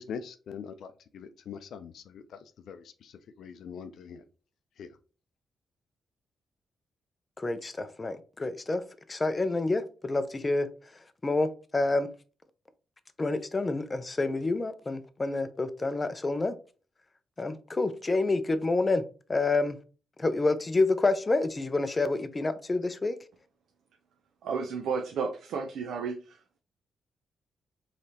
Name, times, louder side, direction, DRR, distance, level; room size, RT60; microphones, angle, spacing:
voice 1, 0.0-4.3 4.8-4.9, left 7 dB, 75° left, 0.5 m, -43 dB
voice 2, 7.4-8.8 9.1-10.7 11.2-12.1 13.2-16.6 17.4-19.0 19.3-19.8 20.2-23.2, left 3 dB, 25° left, 0.5 m, -28 dB
voice 3, 24.4-26.4, right 5 dB, 85° right, 0.6 m, -32 dB
4.8 x 3.3 x 2.8 m
cardioid pair, 120°, 0 cm